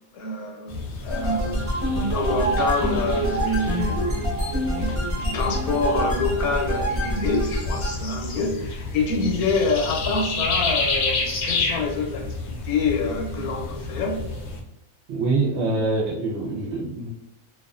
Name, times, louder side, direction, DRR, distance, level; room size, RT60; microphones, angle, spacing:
voice 1, 0.1-4.3 4.8-14.3, left 3 dB, 85° left, 2 dB, 1.1 m, -27 dB
sound 1, 0.7-14.6, left 3 dB, 65° left, 0.7 m, -30 dB
sound 2, 1.1-8.0, right 1 dB, 25° right, 0.4 m, -26 dB
voice 2, 15.1-17.1, right 3 dB, 65° right, -4 dB, 0.8 m, -25 dB
2.4 x 2.4 x 2.3 m, 0.88 s
omnidirectional pair, 1.5 m